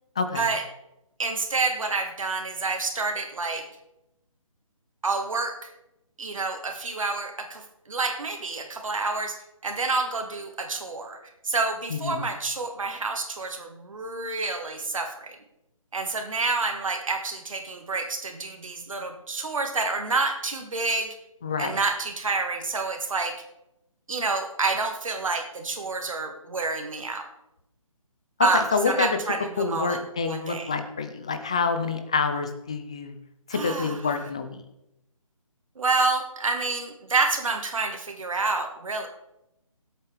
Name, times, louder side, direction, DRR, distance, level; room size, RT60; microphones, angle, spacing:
voice 1, 0.2-0.5 11.9-12.3 21.4-21.8 28.5-29.2 29.6-33.2 33.5-34.6, left 4 dB, 10° left, 8 dB, 0.3 m, -27 dB
voice 2, 1.2-3.7 5.0-5.7 6.2-9.4 9.6-11.2 11.4-15.4 15.9-21.2 21.6-23.3 24.1-27.3 28.4-30.7 33.5-34.0 35.8-39.1, right 3 dB, 65° right, 4 dB, 1.8 m, -28 dB
17.5 x 8.1 x 3.4 m, 0.87 s
figure-of-eight pair, 155°, 18 cm